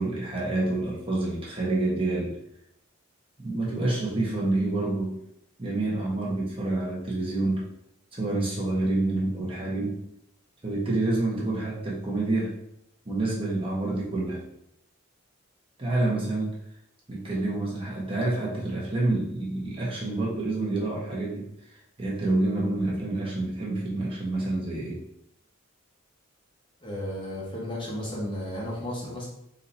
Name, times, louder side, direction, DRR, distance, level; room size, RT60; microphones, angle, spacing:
voice 1, 0.0-2.4 3.4-5.1 5.6-7.6 8.1-10.0 10.6-12.5 13.1-14.4 15.8-16.6 17.1-21.5 22.0-25.0, right 2 dB, 25° right, -4 dB, 1.0 m, -28 dB
voice 2, 26.8-29.3, left 1 dB, 25° left, -5 dB, 1.2 m, -33 dB
4.1 x 2.8 x 4.2 m, 0.76 s
head